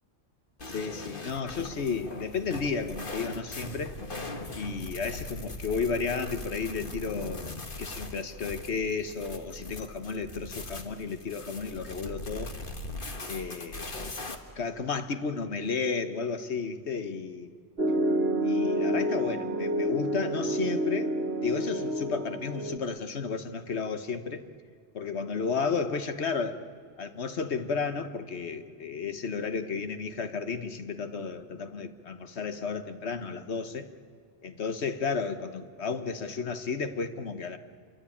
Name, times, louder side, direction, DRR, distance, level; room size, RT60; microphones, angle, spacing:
sound 1, 0.6-14.4, left 2 dB, 50° left, 1.9 m, -40 dB
voice 1, 0.7-4.0 4.5-12.5 13.3-13.9 14.5-17.5 18.4-21.1 21.4-24.4 24.9-26.6 27.0-33.9 34.4-37.6, left 5 dB, 80° left, 9 dB, 1.5 m, -33 dB
Piano, 17.8-22.8, right 1 dB, 65° right, 1.8 m, -28 dB
27.5 x 23.5 x 8.6 m, 2.1 s
omnidirectional pair, 1.1 m